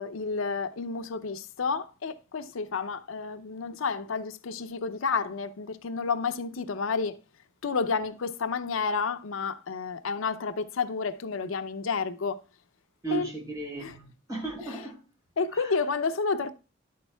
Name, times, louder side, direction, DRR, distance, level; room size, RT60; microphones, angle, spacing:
voice 1, 0.0-7.2 7.6-12.4 13.1-13.3 13.7-14.0 15.4-16.5, left 5 dB, 85° left, 0.6 m, -30 dB
voice 2, 13.0-15.0 15.5-15.8, right 3 dB, 20° right, 4.0 m, -35 dB
11.0 x 8.5 x 2.2 m
head